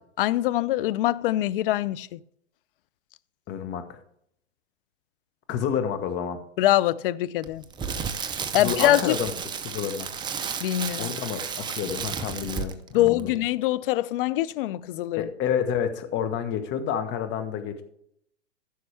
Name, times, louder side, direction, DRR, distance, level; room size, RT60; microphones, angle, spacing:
voice 1, 0.2-2.2 6.6-7.6 8.5-9.2 10.6-11.1 12.9-15.2, left 14 dB, 50° left, 0.6 m, -24 dB
voice 2, 3.5-4.0 5.5-6.4 8.6-9.3 9.6-10.1 11.0-13.3 15.2-17.8, left 8 dB, 30° left, 1.5 m, -29 dB
Crackle, 7.4-12.9 13.2-13.4, right 6 dB, 10° right, 0.6 m, -32 dB
15.0 x 6.6 x 3.4 m
hypercardioid pair, 130°, 36 cm